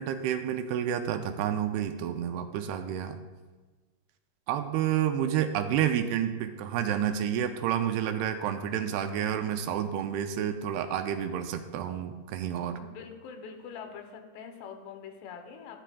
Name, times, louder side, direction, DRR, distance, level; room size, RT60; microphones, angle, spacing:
voice 1, 0.0-3.2 4.5-12.8, right 9 dB, 80° right, 7 dB, 2.4 m, -29 dB
voice 2, 12.8-15.8, left 6 dB, 90° left, 5 dB, 3.1 m, -44 dB
13.0 x 10.5 x 2.3 m, 1.3 s
omnidirectional pair, 4.7 m